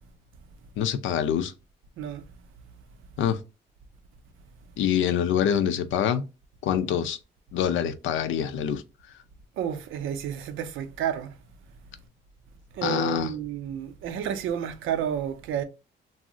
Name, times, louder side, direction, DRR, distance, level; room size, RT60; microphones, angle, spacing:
voice 1, 0.8-1.5 3.2-3.4 4.8-6.2 6.6-7.2 7.5-8.8 12.8-13.3, left 9 dB, 75° left, 0.5 m, -25 dB
voice 2, 9.6-11.3 12.7-15.6, right 9 dB, 85° right, 0.5 m, -31 dB
2.5 x 2.0 x 3.6 m
cardioid pair, 90°, 20 cm